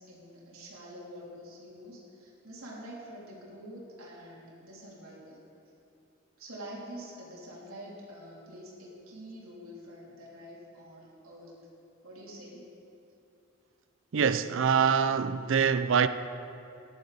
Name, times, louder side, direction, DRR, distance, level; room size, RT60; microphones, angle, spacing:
voice 1, 0.0-5.4 6.4-11.6 12.0-12.7, equal, 85° right, 3.2 m, -46 dB
voice 2, 14.1-16.1, right 6 dB, 60° right, 0.4 m, -24 dB
15.0 x 11.0 x 4.1 m
head